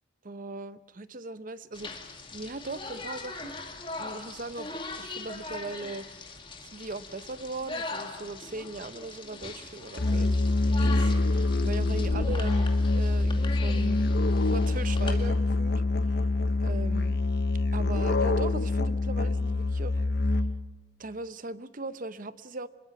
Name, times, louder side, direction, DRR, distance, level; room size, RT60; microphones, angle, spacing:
voice 1, 0.2-1.9 2.3-3.5 4.0-6.1 6.6-14.0 14.4-16.2 16.6-17.2 17.7-20.0 21.0-22.7, right 2 dB, 45° right, 14 dB, 0.8 m, -39 dB
sound 1, 1.7-15.3, left 3 dB, 25° left, 2.2 m, -40 dB
Musical instrument, 10.0-20.8, left 2 dB, 55° left, 0.8 m, -25 dB
25.5 x 21.5 x 6.0 m, 1.3 s
head